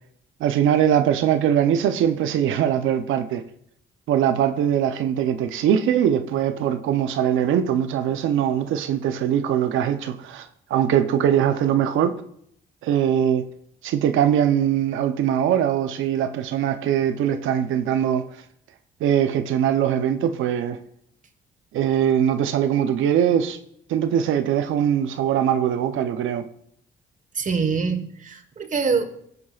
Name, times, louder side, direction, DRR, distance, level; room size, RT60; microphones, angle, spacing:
voice 1, 0.4-3.4 4.1-12.1 12.8-13.4 13.8-18.2 19.0-20.8 21.7-23.6 23.9-26.5, right 9 dB, 85° right, 0.7 m, -21 dB
voice 2, 27.3-29.0, right 5 dB, 40° right, 1.3 m, -24 dB
16.0 x 8.1 x 2.4 m
cardioid pair, 90°, 20 cm